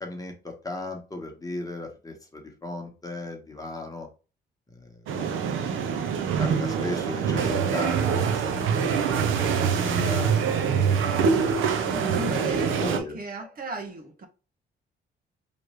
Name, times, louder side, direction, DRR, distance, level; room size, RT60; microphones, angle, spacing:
voice 1, 0.0-4.1 4.7-5.9 6.4-11.0 12.1-13.2, left 2 dB, 20° left, 1.4 m, -36 dB
sound 1, 5.1-13.0, right 6 dB, 85° right, 0.8 m, -24 dB
voice 2, 11.8-14.3, right 2 dB, 50° right, 1.2 m, -36 dB
4.8 x 3.2 x 3.1 m
cardioid pair, 90°, 20 cm